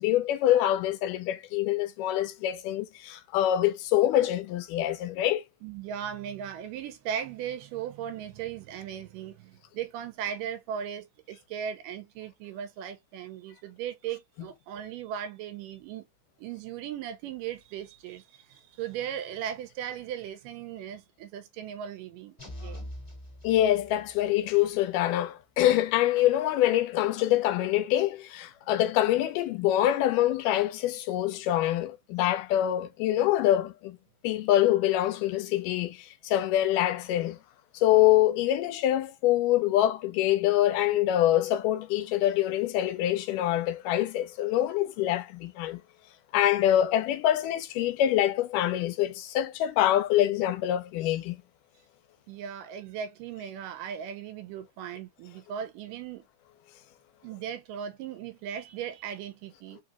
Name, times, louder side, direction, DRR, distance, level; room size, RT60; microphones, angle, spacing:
voice 1, 0.0-5.4 23.4-34.0 34.2-37.4 37.7-45.8 46.3-51.4, left 13 dB, 85° left, 2.2 m, -25 dB
voice 2, 5.6-16.0 16.4-22.9 52.3-56.2 57.2-59.8, right 9 dB, 90° right, 2.4 m, -37 dB
sound 1, 22.4-24.3, equal, 25° left, 0.6 m, -43 dB
5.3 x 2.9 x 2.4 m
omnidirectional pair, 3.8 m